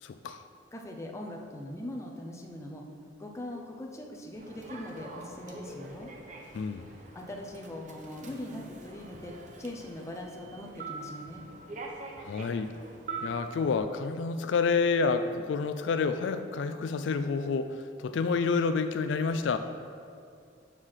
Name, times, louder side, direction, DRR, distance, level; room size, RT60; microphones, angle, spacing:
voice 1, 0.0-0.4 6.5-6.9 12.2-12.7 13.2-19.6, left 4 dB, 75° left, 9 dB, 0.4 m, -29 dB
voice 2, 0.7-2.8 3.2-6.1 7.1-11.4, left 1 dB, 15° left, 1 dB, 0.7 m, -41 dB
Human voice / Subway metro underground, 4.4-13.8, right 3 dB, 40° right, 0.8 m, -44 dB
6.6 x 4.8 x 5.7 m, 2.4 s
head